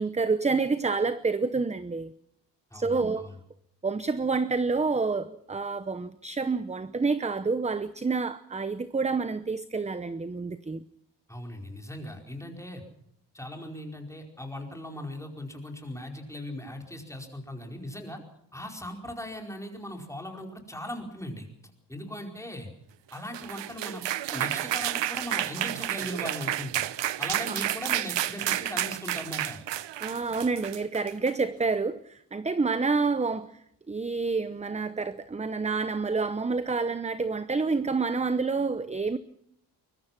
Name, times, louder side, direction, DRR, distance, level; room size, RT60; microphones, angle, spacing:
voice 1, 0.0-2.1 2.7-3.3 3.8-10.9 27.5-27.6 30.0-39.2, right 4 dB, 15° right, 0.8 m, -28 dB
voice 2, 2.7-3.3 11.3-12.8 13.3-18.2 18.5-21.5 21.9-22.7 23.1-24.0 24.3-26.9 27.2-29.6, left 1 dB, 5° left, 4.9 m, -39 dB
sound 1, 23.1-31.4, right 13 dB, 80° right, 0.9 m, -31 dB
24.0 x 22.0 x 6.0 m
wide cardioid pair, 125°, 43 cm